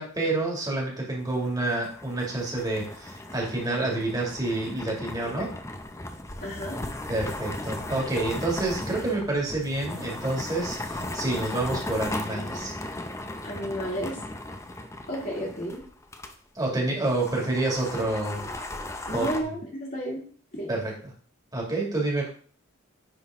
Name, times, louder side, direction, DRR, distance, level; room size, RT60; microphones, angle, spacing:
voice 1, 0.0-5.5 7.1-12.7 16.5-18.5 19.1-19.3 20.7-20.9 21.5-22.3, right 2 dB, 20° right, -2 dB, 2.2 m, -28 dB
sound 1, 1.2-16.3 16.6-16.7 17.1-19.4, left 1 dB, 15° left, 0.6 m, -37 dB
voice 2, 6.4-6.8 13.4-14.2 15.1-15.8 19.1-20.2 20.5-20.7, equal, 45° left, -3 dB, 2.3 m, -32 dB
9.6 x 4.0 x 3.6 m, 0.43 s
head